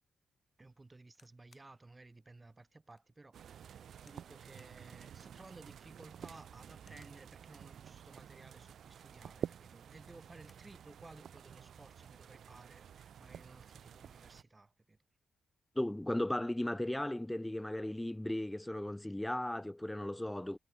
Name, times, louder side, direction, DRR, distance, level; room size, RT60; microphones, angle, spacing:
voice 1, 0.6-15.0, right 2 dB, 30° right, 2.2 m, -57 dB
sound 1, 1.1-1.7 2.3-2.4 2.9-3.1 4.0-4.3 4.6-4.8 5.8-6.2 6.8-7.2 8.5-8.9 10.0-10.7 11.1-11.2 11.4-12.0 12.8-13.1, left 4 dB, 45° left, 3.5 m, -70 dB
sound 2, 3.3-14.4, right 9 dB, 70° right, 0.3 m, -50 dB
voice 2, 15.8-20.6, left 1 dB, 10° left, 0.7 m, -36 dB
supercardioid pair, 50°, 0 cm